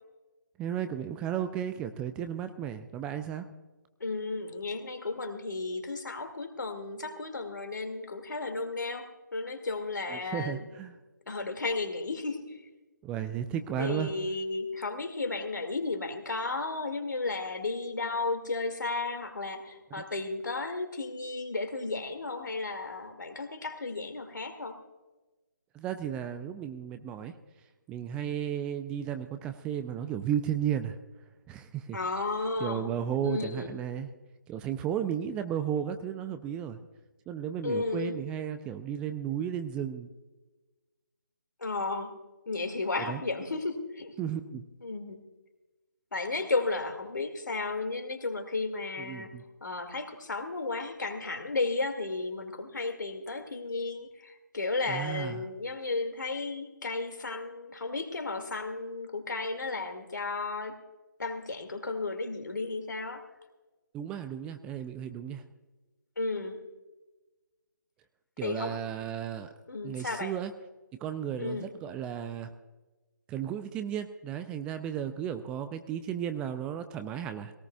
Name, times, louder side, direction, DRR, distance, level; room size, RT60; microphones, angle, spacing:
voice 1, 0.6-3.5 10.1-11.0 13.0-14.1 25.7-27.3 27.9-31.0 31.5-32.0 32.6-34.1 34.5-36.8 37.3-40.1 43.1-43.2 44.2-44.6 49.0-49.4 54.9-55.4 63.9-65.4 68.4-69.5 69.8-70.5 71.0-72.5 73.3-77.5, right 9 dB, 10° right, 9 dB, 0.4 m, -34 dB
voice 2, 4.0-9.1 9.3-10.6 11.3-12.4 13.8-24.8 31.9-32.9 33.2-33.7 37.6-38.2 41.6-42.1 42.5-44.1 44.8-45.2 46.1-49.3 49.6-60.7 61.2-63.2 66.2-66.6 68.4-68.8 69.7-70.3 71.4-71.7, left 3 dB, 70° left, 6 dB, 2.1 m, -33 dB
20.0 x 18.0 x 2.3 m, 1.2 s
figure-of-eight pair, 145°, 10 cm